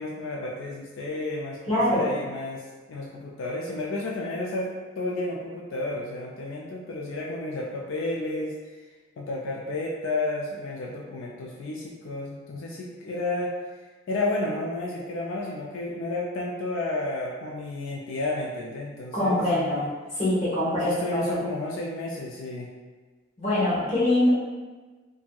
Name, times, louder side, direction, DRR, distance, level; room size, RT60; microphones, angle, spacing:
voice 1, 0.0-8.9 9.2-13.5 14.1-19.9 20.8-22.7, left 2 dB, 80° left, -3 dB, 0.3 m, -32 dB
voice 2, 1.7-2.1 19.1-19.8 20.1-21.4 23.4-24.3, left 1 dB, 30° left, -9 dB, 1.0 m, -24 dB
2.7 x 2.6 x 2.2 m, 1.3 s
head